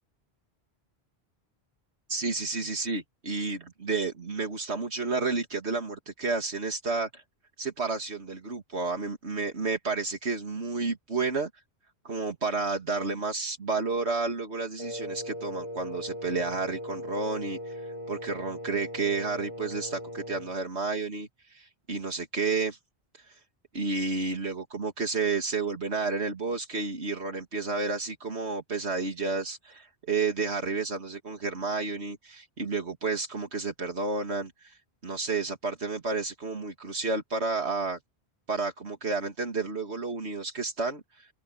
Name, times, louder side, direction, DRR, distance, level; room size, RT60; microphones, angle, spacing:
voice 1, 2.1-7.2 7.6-11.5 12.0-22.8 23.2-23.4 23.7-38.0 38.5-41.3, right 4 dB, 85° right, 2.6 m, -31 dB
Wind instrument woodwind instrument, 14.8-20.6, equal, 30° left, 7.0 m, -39 dB
open air
omnidirectional pair, 1.1 m